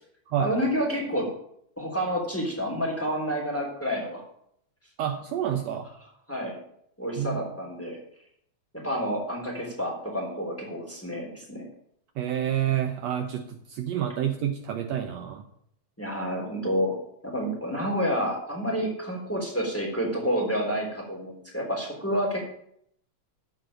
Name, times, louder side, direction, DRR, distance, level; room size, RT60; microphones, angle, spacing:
voice 1, 0.4-1.3 1.8-4.2 6.3-6.6 7.0-8.0 8.7-11.6 16.0-16.9 17.2-22.5, equal, 5° left, -2 dB, 3.3 m, -29 dB
voice 2, 5.0-5.9 7.2-7.4 12.2-15.5, right 10 dB, 70° right, 6 dB, 1.9 m, -28 dB
13.5 x 5.3 x 8.9 m, 0.72 s
omnidirectional pair, 3.4 m